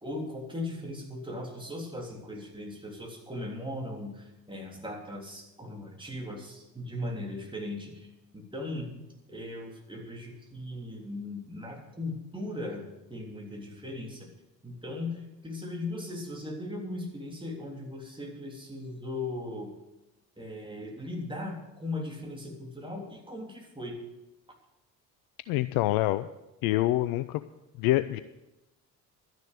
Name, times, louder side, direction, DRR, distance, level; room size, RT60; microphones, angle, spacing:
voice 1, 0.0-8.1 8.3-8.9 9.3-14.3 14.6-19.7 20.4-24.0, left 2 dB, 10° right, 0 dB, 3.5 m, -38 dB
voice 2, 25.5-26.3 26.6-27.4 27.8-28.2, left 16 dB, 50° left, 13 dB, 0.6 m, -26 dB
12.5 x 10.5 x 6.5 m, 0.96 s
figure-of-eight pair, 55°, 48 cm